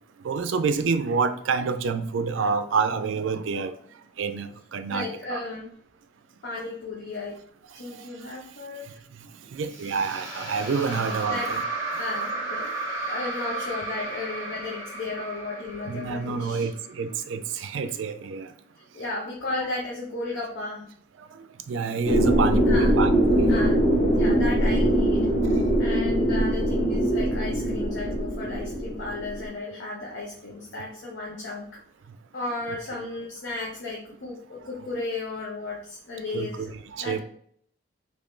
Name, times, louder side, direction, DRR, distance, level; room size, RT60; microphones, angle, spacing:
voice 1, 0.2-3.7 4.2-5.4 9.5-11.6 15.9-18.5 21.7-23.6 25.4-25.5 36.3-37.2, right 5 dB, 75° right, 11 dB, 0.4 m, -28 dB
voice 2, 4.9-5.7 6.4-7.4 7.7-9.0 10.8-11.5 12.0-16.7 17.8-17.9 18.8-20.9 22.7-23.0 23.5-23.8 24.1-25.3 25.8-31.8 32.3-36.7 37.0-37.2, left 2 dB, 65° left, -3 dB, 0.6 m, -34 dB
sound 1, 9.7-17.0, right 3 dB, 15° right, 0.8 m, -33 dB
sound 2, 22.1-29.5, right 1 dB, 15° left, 1.2 m, -22 dB
3.0 x 2.6 x 3.6 m, 0.62 s
head